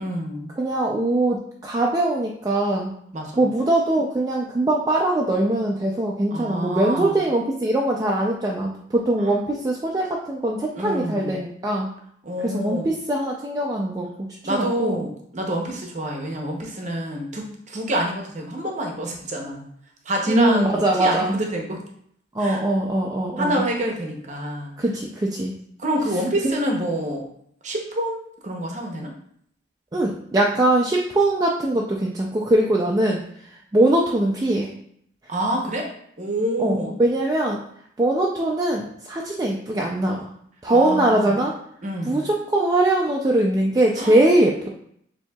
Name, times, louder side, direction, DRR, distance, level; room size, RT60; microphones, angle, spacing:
voice 1, 0.0-0.5 3.1-3.4 6.3-7.2 9.2-9.4 10.7-11.4 12.2-12.9 14.4-19.7 20.0-21.8 22.4-22.6 23.4-24.8 25.8-27.3 27.6-29.1 35.3-35.9 36.2-36.9 40.7-41.4 41.8-42.3 44.0-44.2, right 1 dB, 40° right, 1 dB, 0.7 m, -27 dB
voice 2, 0.6-2.9 3.4-11.9 12.4-14.1 14.5-15.0 20.3-21.4 22.4-23.6 24.8-25.5 26.4-26.5 29.9-33.2 33.7-34.7 36.6-37.6 38.0-40.2 40.6-41.5 42.0-44.7, right 1 dB, 20° right, -2 dB, 0.3 m, -21 dB
7.1 x 2.7 x 2.3 m, 0.69 s
head